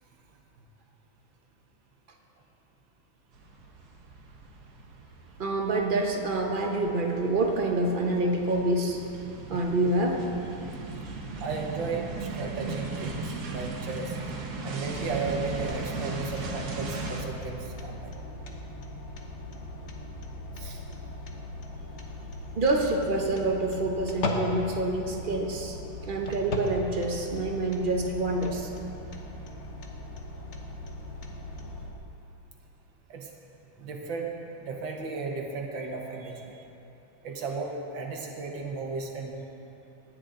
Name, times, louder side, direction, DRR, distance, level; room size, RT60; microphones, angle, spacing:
sound 1, 3.3-17.2, right 3 dB, 55° right, 1.5 m, -38 dB
voice 1, 5.4-9.0 9.5-10.2 22.6-25.8 26.0-28.7, right 2 dB, 35° right, 1 dB, 0.9 m, -27 dB
voice 2, 11.4-14.2 14.6-18.1 20.6-20.8 33.1-33.3 33.8-34.3 34.6-36.6 37.2-39.4, right 4 dB, 75° right, 1 dB, 1.7 m, -35 dB
sound 2, 14.9-31.9, left 2 dB, 45° left, 1.1 m, -38 dB
18.5 x 9.6 x 3.8 m, 2.9 s
omnidirectional pair, 2.1 m